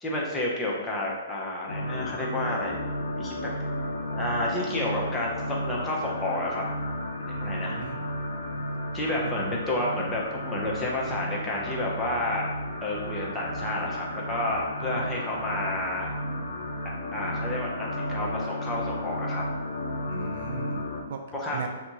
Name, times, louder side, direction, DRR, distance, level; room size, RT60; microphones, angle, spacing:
voice 1, 0.0-2.7 3.2-3.3 3.8-6.6 7.3-7.8 8.9-12.5 12.8-16.1 17.1-19.4 21.3-21.7, left 1 dB, 15° left, -4 dB, 0.7 m, -30 dB
sound 1, 1.7-21.0, left 1 dB, 70° left, 0.6 m, -33 dB
voice 2, 7.3-8.1 9.2-9.3 20.1-21.2 21.5-21.7, right 6 dB, 60° right, 4 dB, 0.4 m, -38 dB
2.8 x 2.3 x 4.0 m, 1.2 s
hypercardioid pair, 135°, 0 cm